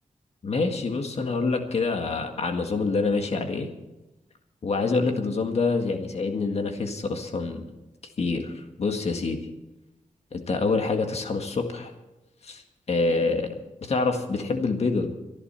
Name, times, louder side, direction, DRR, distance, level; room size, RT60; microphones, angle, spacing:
voice 1, 0.4-3.7 4.6-7.7 8.2-9.4 10.3-11.9 12.4-12.6 12.9-15.1, left 3 dB, 55° left, 5 dB, 1.7 m, -26 dB
26.0 x 11.0 x 4.4 m, 1.0 s
wide cardioid pair, 145°, 13 cm